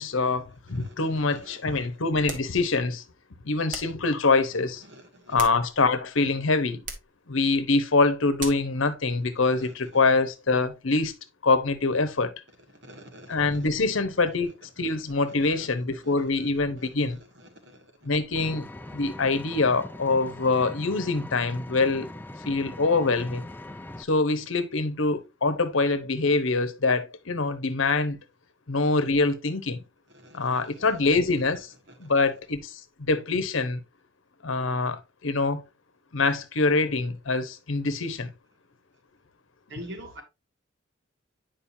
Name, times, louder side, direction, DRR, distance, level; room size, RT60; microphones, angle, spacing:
voice 1, 0.0-3.0 3.4-4.8 5.3-6.8 7.3-11.1 11.4-12.3 13.3-17.2 18.0-18.7 18.9-22.1 22.5-23.4 24.0-28.2 28.7-29.8 30.3-31.7 32.0-32.8 33.1-33.8 34.4-35.6 36.1-38.3, left 3 dB, 75° left, 0.9 m, -25 dB
voice 2, 0.7-1.9 4.8-5.4 9.4-9.7 12.8-13.7 14.8-14.9 15.4-15.7 16.0-16.5 16.8-16.9 17.6-17.9 30.1-30.9 31.9-32.1 39.7-40.2, equal, 60° right, 1.7 m, -46 dB
sound 1, 2.2-2.6 3.7-4.0 5.1-6.0 6.8-7.2 8.4-8.7, right 3 dB, 40° right, 1.4 m, -38 dB
Vehicle, 18.3-24.0, left 1 dB, 10° left, 0.4 m, -41 dB
8.8 x 5.3 x 2.7 m
head